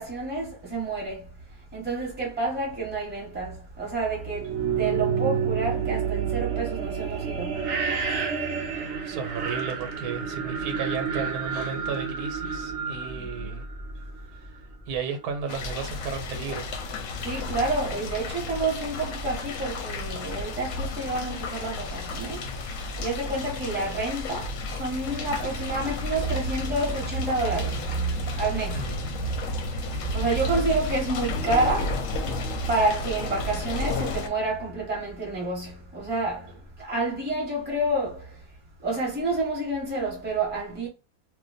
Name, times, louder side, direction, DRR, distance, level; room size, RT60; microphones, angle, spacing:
voice 1, 0.0-7.7 13.1-13.6 17.0-28.9 29.1-38.5 38.8-40.9, right 2 dB, 10° right, 0.9 m, -29 dB
sound 1, 4.3-14.2, right 6 dB, 60° right, 0.8 m, -29 dB
voice 2, 8.0-8.3 8.9-13.6 14.4-14.6 14.9-16.7 28.7-29.1, right 6 dB, 80° right, 1.2 m, -34 dB
sound 2, 15.5-34.3, left 3 dB, 70° left, 0.9 m, -33 dB
2.5 x 2.2 x 3.9 m
omnidirectional pair, 1.6 m